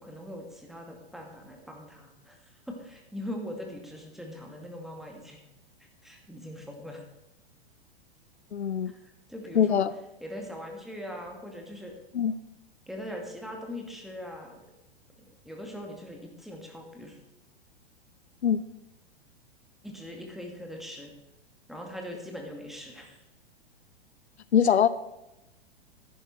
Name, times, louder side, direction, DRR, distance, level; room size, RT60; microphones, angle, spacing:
voice 1, 0.0-5.4 6.0-7.0 9.3-9.8 10.2-11.9 12.9-14.6 15.4-17.2 19.8-21.1 21.7-23.2, left 1 dB, ahead, 1 dB, 2.2 m, -41 dB
voice 2, 8.5-8.9 9.5-9.9 12.1-12.3 18.4-18.6 24.5-24.9, left 8 dB, 80° left, 16 dB, 0.6 m, -22 dB
11.0 x 10.0 x 4.4 m, 0.94 s
figure-of-eight pair, 105°, 32 cm